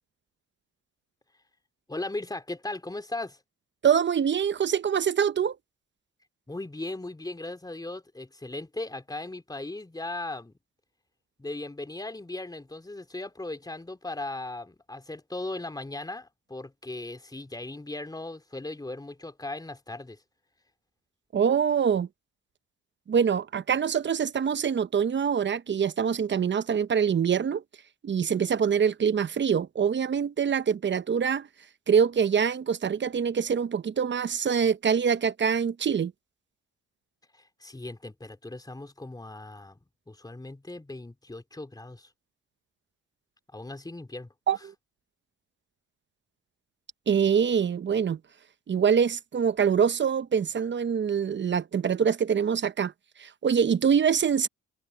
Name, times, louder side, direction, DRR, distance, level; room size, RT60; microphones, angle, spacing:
voice 1, 1.9-3.4 6.5-10.5 11.4-20.2 37.3-39.8 40.1-42.1 43.5-44.3 44.6-44.7, left 2 dB, 15° left, 3.5 m, -38 dB
voice 2, 3.8-5.6 21.3-22.1 23.1-27.6 28.0-31.5 31.9-36.1 44.5-44.6 47.1-48.2 48.7-52.9 53.2-54.5, right 7 dB, 40° right, 0.8 m, -24 dB
cardioid pair, 90°, 30 cm